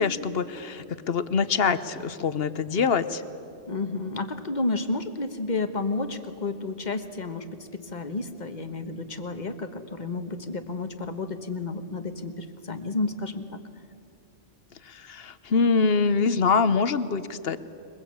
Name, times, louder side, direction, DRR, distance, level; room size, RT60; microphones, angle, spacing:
voice 1, 0.0-3.2 14.9-17.6, left 5 dB, 55° left, 14 dB, 1.0 m, -24 dB
voice 2, 3.7-13.6, left 3 dB, 40° left, 9 dB, 1.3 m, -31 dB
22.5 x 21.5 x 8.6 m, 2.8 s
omnidirectional pair, 1.2 m